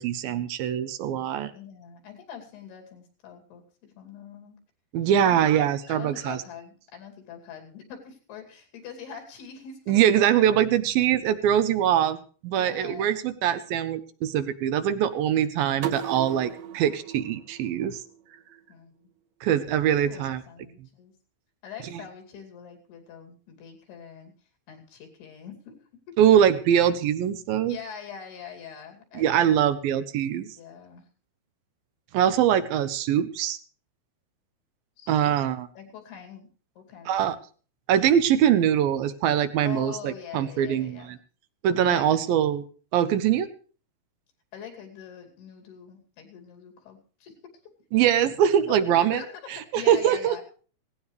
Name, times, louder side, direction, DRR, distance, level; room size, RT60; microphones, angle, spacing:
voice 1, 0.0-1.5 4.9-6.4 9.9-12.2 12.4-18.0 19.4-20.4 26.2-27.8 29.2-30.5 32.1-33.6 35.1-35.7 37.1-37.4 37.9-41.2 41.6-42.6 42.9-43.5 47.9-49.2 49.7-50.4, right 10 dB, 75° right, 11 dB, 2.5 m, -23 dB
voice 2, 1.5-4.6 5.2-10.0 12.5-13.2 18.7-18.9 19.9-21.1 21.6-24.3 24.7-25.8 26.1-26.2 27.7-29.7 30.6-31.1 35.0-35.4 35.8-36.5 36.8-37.2 39.6-41.1 41.8-42.0 44.5-47.4 48.2-48.3 48.7-50.4, left 7 dB, 85° left, 3 dB, 4.7 m, -43 dB
sound 1, 15.8-18.6, right 9 dB, 60° right, 2.1 m, -37 dB
17.0 x 17.0 x 3.3 m, 0.40 s
omnidirectional pair, 4.5 m